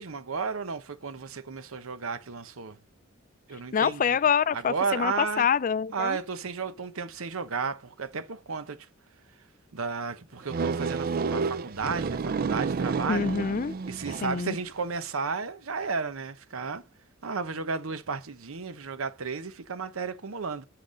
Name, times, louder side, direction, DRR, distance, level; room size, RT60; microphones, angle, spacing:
voice 1, 0.0-2.8 3.5-4.2 4.5-5.5 5.9-8.9 9.7-13.3 13.8-16.8 17.2-20.7, right 5 dB, 90° right, 0.9 m, -33 dB
voice 2, 3.7-6.2 13.1-13.8 14.2-14.6, left 6 dB, 40° left, 0.4 m, -26 dB
sound 1, 10.5-14.5, right 5 dB, 45° right, 0.4 m, -30 dB
7.7 x 6.7 x 5.2 m
head